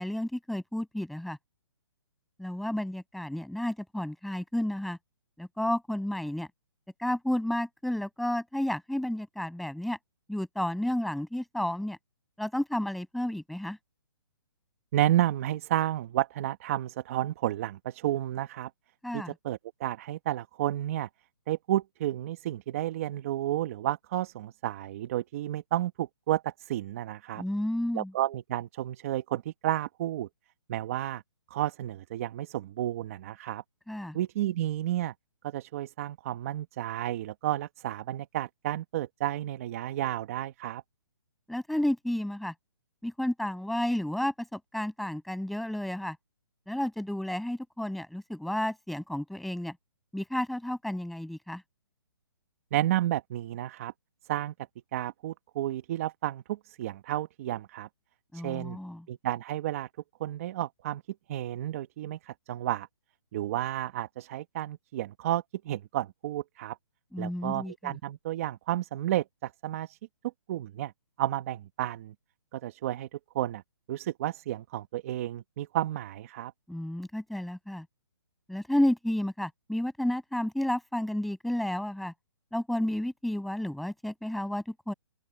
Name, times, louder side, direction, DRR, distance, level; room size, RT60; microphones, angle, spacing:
voice 1, 0.0-1.4 2.4-5.0 5.4-6.5 7.0-10.0 10.3-12.0 12.4-13.8 19.0-19.3 27.3-28.1 33.9-34.2 41.5-42.5 43.0-46.2 46.7-49.8 50.1-51.6 58.3-59.0 67.1-68.0 76.7-77.9 78.5-82.1 82.5-84.9, left 1 dB, ahead, 7.3 m, -31 dB
voice 2, 14.9-18.7 19.1-21.1 21.5-27.4 27.9-30.3 30.7-31.2 31.5-33.6 34.1-35.1 35.4-40.8 52.7-53.9 54.3-54.5 54.9-57.9 58.3-58.8 59.1-59.9 60.2-61.0 61.3-62.9 63.3-66.8 67.2-70.0 70.5-70.9 71.2-72.1 72.5-73.6 73.9-76.5, right 13 dB, 30° right, 1.6 m, -31 dB
open air
hypercardioid pair, 165°, 15 cm